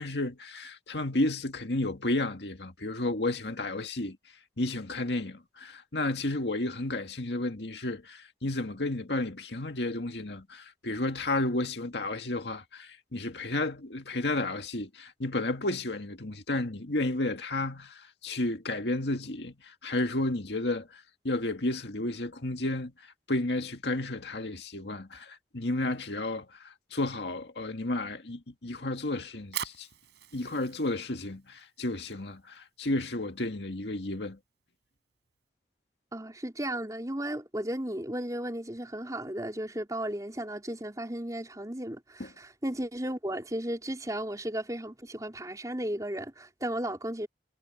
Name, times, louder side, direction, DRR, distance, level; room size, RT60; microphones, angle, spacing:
voice 1, 0.0-4.2 4.6-29.9 30.3-34.4 42.2-42.3, left 2 dB, 70° left, 2.0 m, -32 dB
Fire, 29.2-35.4, right 10 dB, 85° right, 4.3 m, -45 dB
voice 2, 36.1-47.3, right 1 dB, 20° right, 4.1 m, -35 dB
head